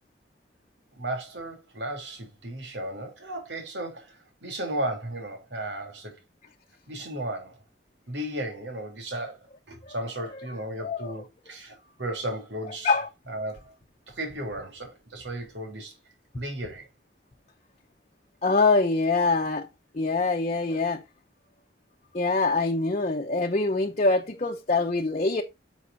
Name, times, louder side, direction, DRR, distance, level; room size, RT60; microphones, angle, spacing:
voice 1, 1.0-6.1 6.9-7.6 8.1-9.4 9.7-12.9 13.3-13.7 14.1-15.9 16.3-16.9, right 1 dB, 85° right, 3.4 m, -35 dB
voice 2, 10.8-11.1 12.6-13.1 18.4-19.7 19.9-21.0 22.1-25.4, left 3 dB, 40° left, 0.9 m, -24 dB
10.0 x 7.3 x 2.7 m
head